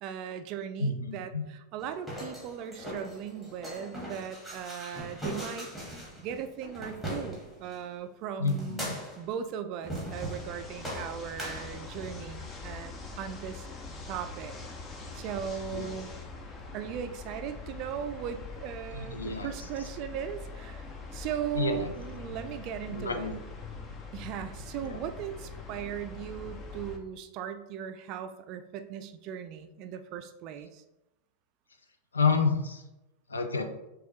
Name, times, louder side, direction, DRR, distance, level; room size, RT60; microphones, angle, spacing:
voice 1, 0.0-5.7 6.2-13.6 14.1-14.6 15.1-16.1 16.7-20.9 21.1-23.3 24.1-30.8, right 9 dB, 40° right, 9 dB, 0.4 m, -38 dB
voice 2, 0.8-1.4 8.4-9.0 15.7-15.9 18.9-19.5 21.5-21.9 22.9-23.4 24.8-25.0 32.1-32.8 33.3-33.6, left 4 dB, 75° left, 6 dB, 0.5 m, -29 dB
sound 1, 1.8-7.8 8.5-9.3 9.8-10.5 10.8-12.3, equal, 5° left, 1.5 m, -40 dB
sound 2, 10.1-27.0, left 3 dB, 25° left, 0.6 m, -43 dB
6.1 x 2.4 x 3.1 m, 0.95 s
figure-of-eight pair, 90°, 0 cm